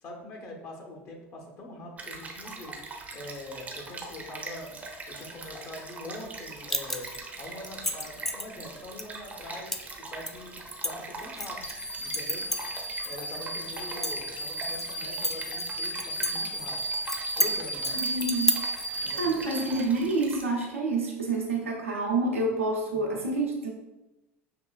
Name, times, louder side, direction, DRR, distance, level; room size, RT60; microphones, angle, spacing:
voice 1, 0.0-2.8 3.1-4.8 5.1-7.1 7.4-9.7 10.0-11.6 12.0-12.4 13.0-16.8 17.4-18.0 18.9-19.2 19.6-19.7 22.9-23.1, left 1 dB, 40° left, 0 dB, 1.2 m, -43 dB
Stream, 2.0-20.4, right 3 dB, 20° right, 0.8 m, -42 dB
sound 1, 6.7-7.2 7.6-8.5 9.0-9.1 9.7-9.9 10.3-11.7 12.1-13.1 13.4-13.5 13.9-14.8 15.2-16.3 16.6-16.7 17.1-17.5 17.8-18.9, left 1 dB, 5° left, 0.3 m, -29 dB
sound 2, 11.6-20.1, right 2 dB, 90° left, 0.5 m, -34 dB
voice 2, 17.9-18.6 18.9-23.7, right 2 dB, 85° right, -3 dB, 0.8 m, -28 dB
5.8 x 3.1 x 2.3 m, 1.0 s
figure-of-eight pair, 75°, 7 cm